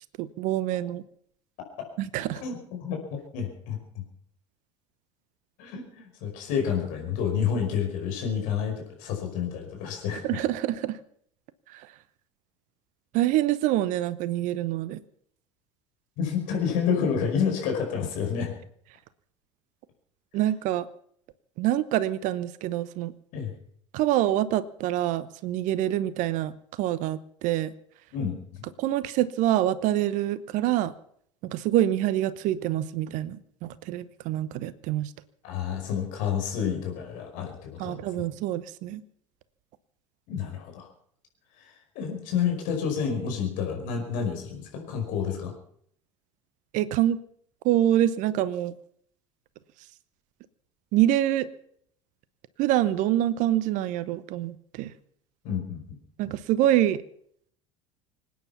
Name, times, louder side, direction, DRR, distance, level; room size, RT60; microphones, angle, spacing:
voice 1, 0.2-1.0 2.0-2.4 10.1-11.0 11.7-11.9 13.1-15.0 20.3-20.9 21.6-23.1 23.9-27.7 28.8-30.9 31.4-35.1 37.8-39.0 46.7-47.2 47.6-48.7 50.9-51.5 52.6-54.9 56.2-57.0, right 13 dB, 50° right, 16 dB, 0.9 m, -26 dB
voice 2, 2.4-4.0 5.6-10.4 16.2-18.5 23.3-23.5 28.1-28.7 35.4-38.1 40.3-40.9 41.6-41.7 42.0-45.5 55.4-56.0, left 7 dB, 55° left, 3 dB, 5.2 m, -29 dB
25.5 x 9.7 x 5.8 m, 0.65 s
figure-of-eight pair, 70°, 16 cm